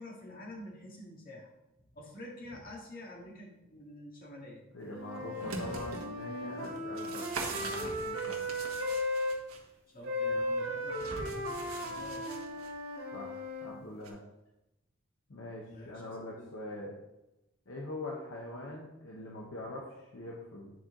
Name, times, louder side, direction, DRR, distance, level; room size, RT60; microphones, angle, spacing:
voice 1, 0.0-1.5 1.9-4.6 9.9-12.3 15.7-16.5, left 1 dB, 40° left, -2 dB, 1.8 m, -48 dB
voice 2, 4.7-8.6 13.1-14.2 15.3-17.0 17.7-20.7, left 1 dB, 60° left, -2 dB, 1.0 m, -43 dB
Wind instrument woodwind instrument, 4.9-9.4 10.0-13.7, left 1 dB, 50° right, 1.6 m, -36 dB
sound 1, 5.2-6.1 6.6-9.6 10.9-12.7 14.0-14.1, right 3 dB, 80° right, 1.3 m, -42 dB
9.1 x 4.4 x 3.8 m, 0.94 s
head